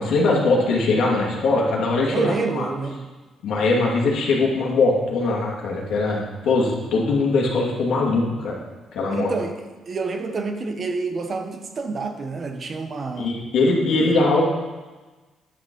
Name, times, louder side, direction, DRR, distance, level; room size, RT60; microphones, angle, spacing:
voice 1, 0.0-2.7 3.4-8.5 8.9-9.3 13.2-14.4, left 3 dB, 75° left, -2 dB, 2.5 m, -21 dB
voice 2, 2.1-3.1 9.1-9.6 9.9-13.4 14.0-14.2, right 4 dB, 45° right, 6 dB, 1.1 m, -28 dB
10.5 x 6.4 x 5.4 m, 1.3 s
cardioid pair, 80°, 0 cm